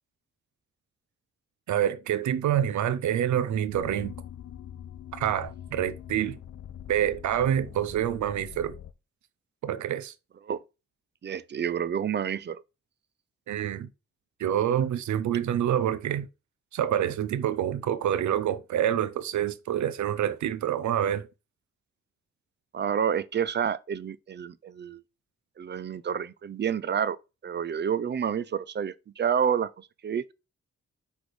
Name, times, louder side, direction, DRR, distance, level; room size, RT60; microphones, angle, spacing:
voice 1, 1.7-4.1 5.1-6.4 6.9-8.7 9.6-10.1 13.5-13.9 14.4-16.3 16.7-21.2, right 10 dB, 80° right, 0.6 m, -27 dB
sound 1, 3.7-8.9, left 10 dB, 60° left, 0.7 m, -43 dB
voice 2, 11.2-12.6 22.7-25.0 25.6-27.2 27.4-30.3, right 8 dB, 40° right, 0.4 m, -29 dB
6.1 x 3.4 x 4.7 m
cardioid pair, 90°, 29 cm